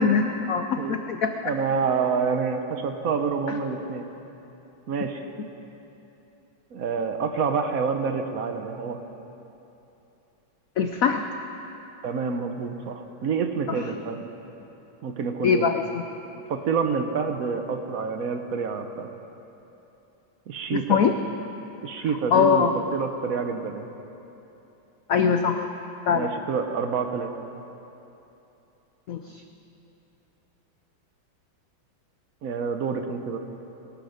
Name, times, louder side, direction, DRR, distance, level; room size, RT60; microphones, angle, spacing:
voice 1, 0.0-1.5 10.8-11.2 15.4-16.0 20.7-21.1 22.3-22.7 25.1-25.7 26.1-26.3 29.1-29.2, left 6 dB, 85° left, 6 dB, 0.7 m, -22 dB
voice 2, 1.4-4.0 4.9-5.2 6.7-9.0 12.0-14.2 15.0-15.7 16.5-19.1 20.5-21.0 21.8-22.7 22.9-23.9 26.1-27.3 32.4-33.4, right 5 dB, 55° right, 6 dB, 1.1 m, -27 dB
22.0 x 12.0 x 5.1 m, 3.0 s
omnidirectional pair, 2.3 m